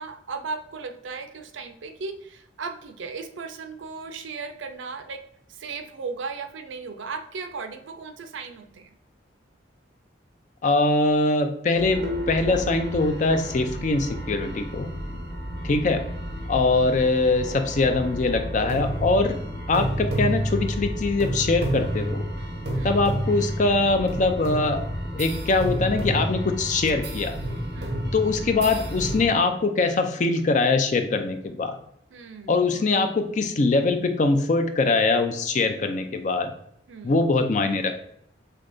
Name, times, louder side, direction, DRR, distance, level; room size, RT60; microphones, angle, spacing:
voice 1, 0.0-5.2 5.5-9.0 22.7-23.1 27.7-28.0 32.1-33.0 36.9-37.2, right 4 dB, 75° right, 7 dB, 0.5 m, -36 dB
voice 2, 10.6-14.9 15.6-16.0 16.5-19.4 19.7-22.3 22.8-24.9 25.1-27.4 28.1-31.8 32.5-36.5 37.0-37.9, left 3 dB, 40° left, 7 dB, 0.4 m, -22 dB
sound 1, 11.7-29.3, equal, 55° right, 1.0 m, -30 dB
6.4 x 2.2 x 2.6 m, 0.69 s
head